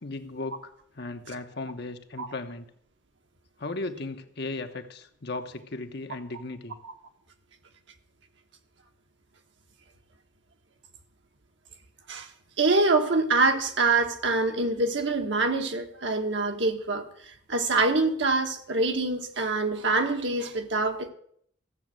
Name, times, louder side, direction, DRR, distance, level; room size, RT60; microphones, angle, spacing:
voice 1, 0.0-2.6 3.6-6.8, left 2 dB, 55° left, 1.1 m, -36 dB
voice 2, 12.6-17.0 17.5-21.1, right 3 dB, 70° right, 1.4 m, -25 dB
14.5 x 7.2 x 7.8 m
head